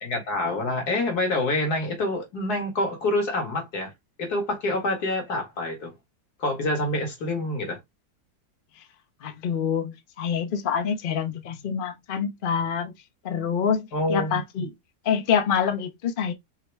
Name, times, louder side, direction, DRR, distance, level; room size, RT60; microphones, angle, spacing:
voice 1, 0.0-3.9 4.2-5.9 6.4-7.8 13.9-14.7, left 2 dB, 65° left, 2.0 m, -27 dB
voice 2, 9.2-12.9 13.2-14.7 15.0-16.3, left 7 dB, 50° left, 0.7 m, -26 dB
4.7 x 2.1 x 4.6 m
omnidirectional pair, 1.8 m